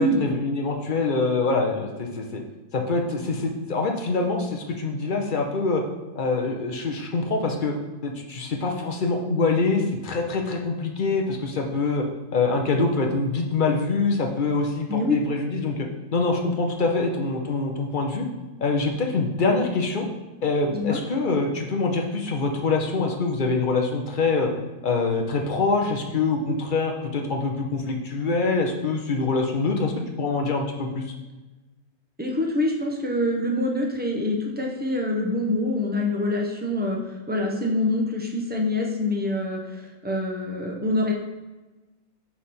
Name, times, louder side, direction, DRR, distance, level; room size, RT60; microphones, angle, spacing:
voice 1, 0.0-2.4 2.7-5.8 6.1-7.8 8.0-12.0 12.3-15.9 16.1-18.2 18.6-20.1 20.4-24.5 24.8-31.1, left 3 dB, 50° left, 2 dB, 0.6 m, -25 dB
voice 2, 32.2-41.1, left 1 dB, 15° right, 0 dB, 0.4 m, -25 dB
5.8 x 4.9 x 4.3 m, 1.2 s
omnidirectional pair, 1.6 m